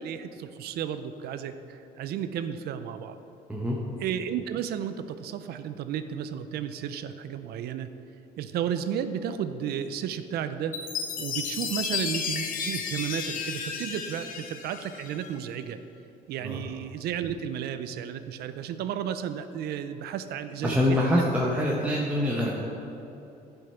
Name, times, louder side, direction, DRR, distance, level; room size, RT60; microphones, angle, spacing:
voice 1, 0.0-3.2 4.0-7.9 8.4-10.8 11.2-15.8 16.3-21.3, right 9 dB, 70° right, 10 dB, 0.5 m, -33 dB
Chime, 10.7-15.3, left 6 dB, 55° left, 0.8 m, -33 dB
voice 2, 20.6-22.5, left 1 dB, 10° right, -4 dB, 0.9 m, -25 dB
10.5 x 5.4 x 4.4 m, 2.9 s
cardioid pair, 110°, 17 cm